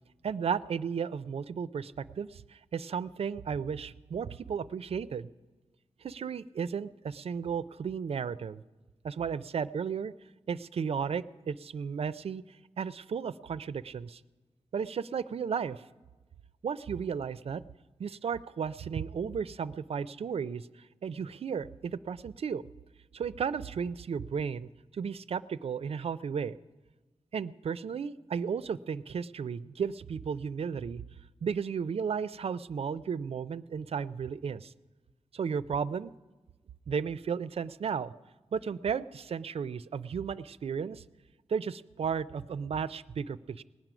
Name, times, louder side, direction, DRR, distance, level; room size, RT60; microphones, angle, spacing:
voice 1, 0.2-5.3 6.0-8.6 9.0-10.1 10.5-12.4 12.8-14.2 14.7-15.8 16.6-17.6 18.0-20.7 21.0-22.6 23.1-26.6 27.3-31.0 31.4-34.7 35.3-36.1 36.9-38.1 38.5-41.0 41.5-43.6, right 6 dB, 65° right, 15 dB, 0.4 m, -34 dB
19.0 x 9.0 x 6.0 m, 1.2 s
wide cardioid pair, 115°, 11 cm